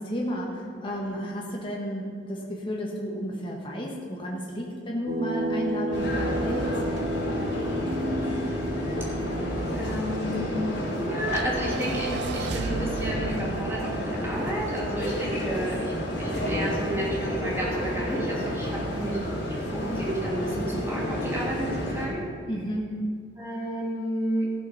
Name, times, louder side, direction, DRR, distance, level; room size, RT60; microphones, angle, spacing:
voice 1, 0.0-6.7 22.5-22.9, equal, 25° left, -2 dB, 1.5 m, -32 dB
sound 1, 5.1-18.2, right 1 dB, 40° right, 0.9 m, -35 dB
sound 2, 5.9-22.1, equal, 60° left, 3.6 m, -30 dB
voice 2, 7.8-8.6 9.8-10.6 10.9-15.9 16.2-22.2 23.4-24.5, equal, 15° right, -5 dB, 2.7 m, -32 dB
sound 3, 11.2-15.6, right 6 dB, 60° right, 0.4 m, -37 dB
14.5 x 7.8 x 5.6 m, 2.1 s
head